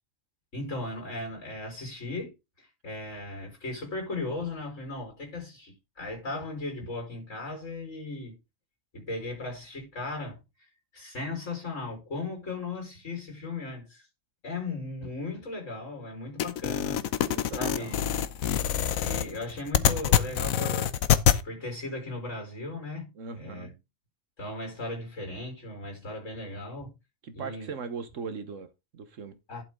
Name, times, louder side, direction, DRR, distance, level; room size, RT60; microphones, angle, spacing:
voice 1, 0.5-8.4 8.9-10.4 10.9-14.1 14.4-17.1 17.6-18.1 19.0-21.0 21.4-23.1 23.4-23.7 24.4-26.9 27.3-27.7 29.5-29.6, left 2 dB, 60° left, 5.2 m, -37 dB
sound 1, 16.4-21.4, left 10 dB, 85° left, 1.2 m, -25 dB
voice 2, 17.2-18.3 23.1-23.7 27.2-29.4, right 5 dB, 65° right, 1.5 m, -40 dB
11.5 x 6.5 x 3.7 m
omnidirectional pair, 1.4 m